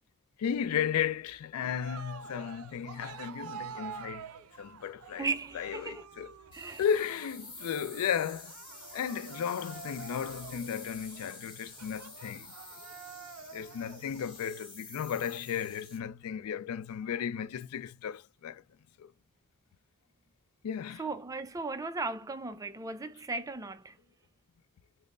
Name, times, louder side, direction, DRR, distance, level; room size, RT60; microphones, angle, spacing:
voice 1, 0.4-4.3 4.6-5.3 5.5-6.3 6.8-8.5 8.9-12.5 13.5-18.6 19.0-19.1 20.6-21.0, left 8 dB, 85° left, 0.3 m, -34 dB
Cheering, 1.8-14.2, right 6 dB, 80° right, 0.5 m, -48 dB
voice 2, 5.2-6.1 6.5-6.8 21.0-24.0, right 3 dB, 15° right, 0.3 m, -36 dB
sound 1, 6.5-16.0, left 3 dB, 20° left, 1.3 m, -49 dB
5.2 x 2.1 x 2.4 m
head